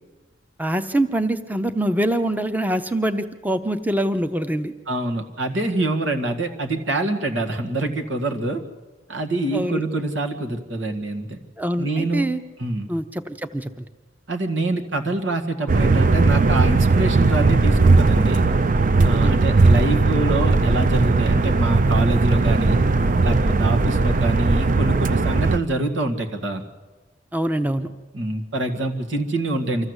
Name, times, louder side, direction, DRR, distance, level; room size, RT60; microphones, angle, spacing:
voice 1, 0.6-4.7 9.5-9.8 11.6-12.4 12.9-13.8 19.0-19.4 27.3-27.9, right 1 dB, 10° right, 10 dB, 0.7 m, -24 dB
voice 2, 4.9-8.6 9.1-11.4 11.8-12.3 12.6-12.9 14.3-18.5 19.0-22.8 23.2-26.6 28.1-29.9, right 2 dB, 90° right, 5 dB, 2.0 m, -25 dB
sound 1, 15.7-25.6, right 3 dB, 45° right, 0.5 m, -18 dB
25.0 x 14.5 x 8.1 m, 1.3 s
head